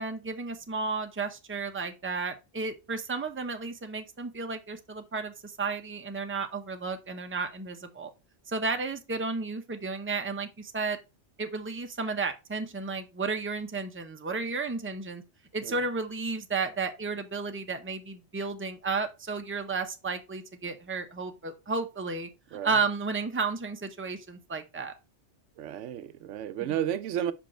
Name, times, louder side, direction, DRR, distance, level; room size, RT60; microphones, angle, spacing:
voice 1, 0.0-8.1 8.5-11.0 11.4-15.2 15.5-22.3 22.6-24.9, right 4 dB, 15° right, 0.7 m, -33 dB
voice 2, 25.6-27.3, right 10 dB, 85° right, 0.9 m, -32 dB
5.5 x 5.1 x 4.3 m
omnidirectional pair, 1.2 m